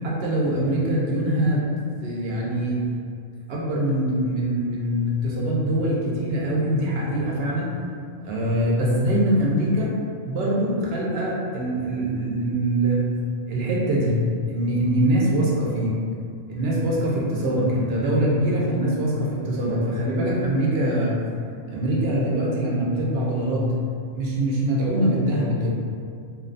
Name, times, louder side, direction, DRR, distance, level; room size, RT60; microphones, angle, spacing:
voice 1, 0.0-1.7 2.0-2.8 3.5-7.7 8.2-9.9 10.3-13.0 13.5-14.2 14.5-16.0 16.5-21.2 21.7-23.7 24.1-25.7, right 1 dB, 60° right, -4 dB, 0.7 m, -23 dB
2.6 x 2.2 x 2.5 m, 2.3 s
omnidirectional pair, 1.3 m